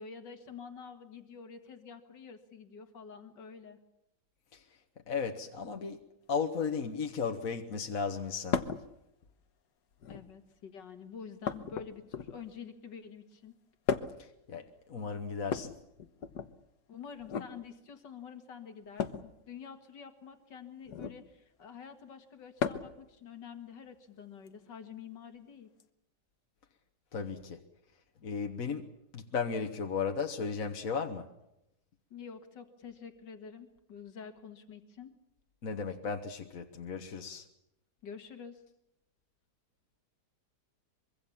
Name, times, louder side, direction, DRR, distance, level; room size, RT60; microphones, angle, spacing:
voice 1, 0.0-3.8 10.1-13.5 16.9-25.7 32.1-35.1 38.0-38.6, left 6 dB, 85° left, 7 dB, 2.5 m, -48 dB
voice 2, 5.1-6.0 6.3-8.6 14.2-15.7 27.1-27.6 28.2-28.9 29.1-31.3 35.6-37.4, left 5 dB, 55° left, 4 dB, 1.7 m, -35 dB
sound 1, 8.5-8.9 9.9-10.4 11.4-12.5 13.9-14.3 15.4-16.5 17.2-17.5 19.0-19.3 20.9-21.2 22.6-23.0 24.5-24.6 25.8-25.9, left 7 dB, 70° left, 1.7 m, -35 dB
24.5 x 23.5 x 7.3 m, 0.84 s
omnidirectional pair, 1.8 m